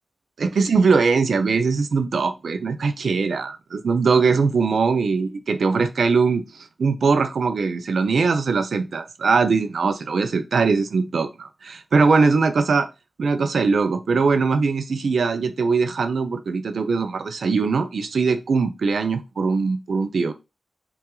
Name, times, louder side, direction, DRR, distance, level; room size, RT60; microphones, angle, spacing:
voice 1, 0.4-6.4 6.8-12.9 13.2-20.3, right 4 dB, 85° right, 0.5 m, -21 dB
5.6 x 2.4 x 2.3 m
wide cardioid pair, 110°, 0 cm